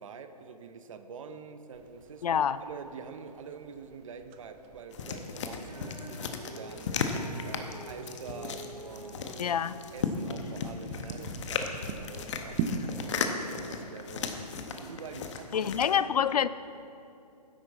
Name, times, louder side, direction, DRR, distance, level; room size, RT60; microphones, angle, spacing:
voice 1, 0.0-9.5 9.9-14.4 14.8-15.7 16.2-16.5, right 5 dB, 50° right, 9 dB, 0.8 m, -46 dB
sound 1, 1.7-13.2, right 6 dB, 20° right, 0.5 m, -43 dB
voice 2, 2.2-2.6 9.4-9.8 15.5-16.5, left 8 dB, 65° left, 16 dB, 0.5 m, -26 dB
sound 2, 4.9-15.9, left 5 dB, 45° left, 1.0 m, -36 dB
Female singing, 5.7-11.9, right 1 dB, 85° right, 1.7 m, -49 dB
13.5 x 10.5 x 4.2 m, 2.7 s
hypercardioid pair, 140°, 21 cm